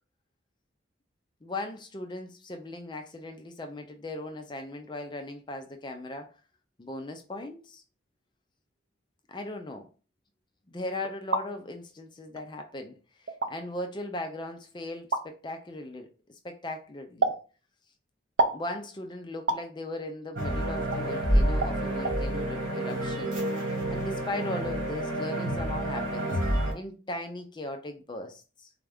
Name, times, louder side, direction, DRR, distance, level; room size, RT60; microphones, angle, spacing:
voice 1, 1.4-6.3 6.8-7.8 9.3-9.9 10.7-17.3 18.5-23.4 23.9-26.3 26.7-28.7, left 1 dB, 25° left, 0.4 m, -38 dB
sound 1, 11.0-11.5 12.4-12.5 13.3-13.5 15.1-15.3 17.2-17.4 18.4-18.6 19.5-19.7 20.9-21.0 21.6-21.8 22.0-22.2, right 3 dB, 60° right, 0.5 m, -27 dB
sound 2, 20.4-26.7, right 1 dB, 85° right, 1.6 m, -28 dB
4.1 x 2.4 x 3.4 m
head